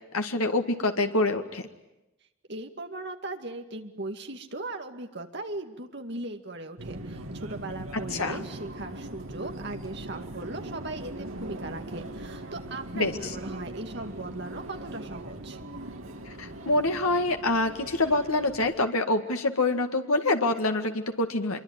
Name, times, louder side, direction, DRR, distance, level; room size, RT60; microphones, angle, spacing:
voice 1, 0.1-1.7 8.1-8.4 12.9-13.3 16.3-21.6, left 2 dB, 90° left, 5 dB, 2.0 m, -26 dB
voice 2, 2.5-15.6, right 2 dB, 50° right, 5 dB, 2.3 m, -38 dB
Subway metro underground, 6.8-18.7, right 1 dB, 75° right, 2.7 m, -40 dB
25.5 x 23.0 x 9.7 m, 0.94 s
head